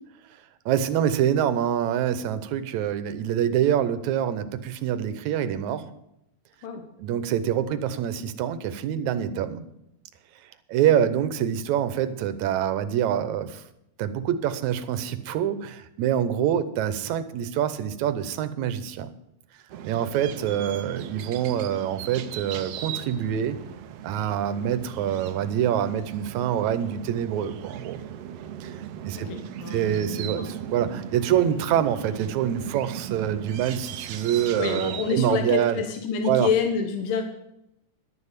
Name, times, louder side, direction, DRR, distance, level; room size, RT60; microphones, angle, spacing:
voice 1, 0.7-5.9 7.0-9.7 10.7-13.6 14.0-19.1 19.8-23.6 24.0-28.0 28.6-29.3 29.7-35.8 36.2-36.5, right 10 dB, 70° right, 11 dB, 2.0 m, -26 dB
sound 1, 19.7-35.2, right 10 dB, 90° right, 1.3 m, -38 dB
voice 2, 29.2-30.5 34.6-37.2, left 6 dB, 85° left, 5 dB, 3.0 m, -28 dB
11.5 x 7.7 x 8.2 m, 0.82 s
omnidirectional pair, 3.8 m